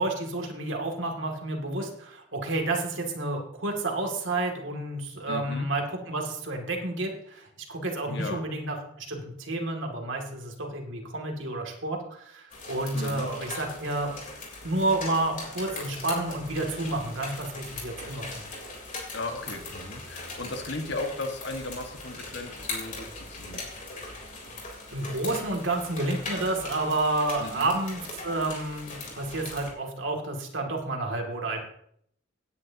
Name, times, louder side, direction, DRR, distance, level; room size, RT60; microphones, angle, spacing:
voice 1, 0.0-14.1 14.6-18.4 24.9-31.6, right 2 dB, 75° right, 1 dB, 2.5 m, -30 dB
voice 2, 5.3-5.7 8.1-8.5 12.9-13.3 19.1-23.6 27.4-27.7, left 2 dB, 60° left, 4 dB, 1.7 m, -36 dB
sound 1, 12.5-29.7, left 3 dB, 40° left, 3.7 m, -40 dB
17.0 x 10.0 x 2.9 m, 0.68 s
head